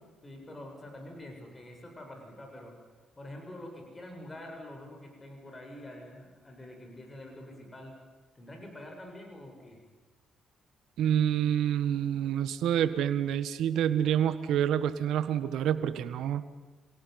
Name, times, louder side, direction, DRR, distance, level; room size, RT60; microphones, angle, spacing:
voice 1, 0.2-2.8 3.2-8.0 8.4-9.8, left 1 dB, 20° left, 2 dB, 7.1 m, -46 dB
voice 2, 11.0-16.4, right 10 dB, 80° right, 12 dB, 1.4 m, -27 dB
27.5 x 18.0 x 9.5 m, 1.3 s
cardioid pair, 90°, 0 cm